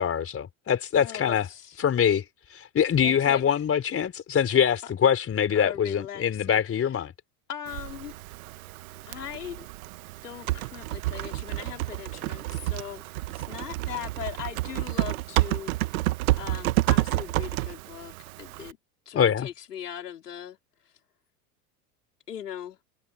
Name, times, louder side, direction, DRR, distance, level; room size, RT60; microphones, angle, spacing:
voice 1, 0.0-1.5 1.8-2.2 2.5-7.1 19.1-19.5, left 8 dB, 30° left, 4.3 m, -24 dB
voice 2, 1.0-1.8 3.0-3.6 4.8-4.9 5.5-6.9 7.5-8.1 9.0-9.7 10.2-13.0 13.3-16.0 16.4-18.8 19.0-20.6 22.3-22.8, left 10 dB, 80° left, 5.0 m, -39 dB
Typing, 7.7-18.7, right 18 dB, 65° right, 1.8 m, -30 dB
hypercardioid pair, 85°, 46 cm